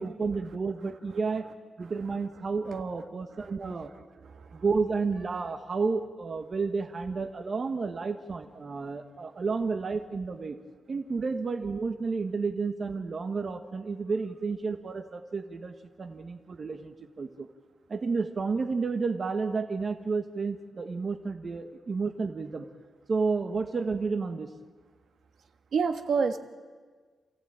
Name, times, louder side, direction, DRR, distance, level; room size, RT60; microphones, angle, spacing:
voice 1, 0.0-1.5 1.8-3.9 4.5-10.6 10.9-17.5 17.9-22.7 23.1-24.5, right 4 dB, 40° right, 6 dB, 1.2 m, -31 dB
voice 2, 4.2-4.6 25.7-26.4, right 5 dB, 70° right, 7 dB, 1.5 m, -28 dB
27.5 x 15.5 x 8.7 m, 1.5 s
wide cardioid pair, 150°, 0 cm